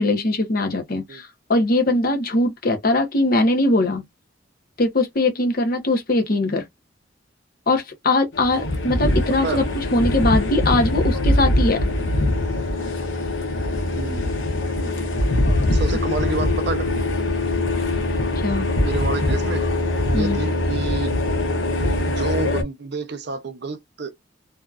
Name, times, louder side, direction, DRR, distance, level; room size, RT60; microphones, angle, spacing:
voice 1, 0.0-4.0 4.8-6.7 7.7-11.9 18.4-18.7 20.1-20.4, left 2 dB, 50° left, 0.8 m, -21 dB
sound 1, 8.3-22.6, left 1 dB, 80° left, 0.9 m, -22 dB
voice 2, 14.0-14.5 15.7-17.0 18.8-19.7 20.1-21.1 22.0-24.2, right 3 dB, 60° right, 0.6 m, -29 dB
2.7 x 2.4 x 2.3 m
head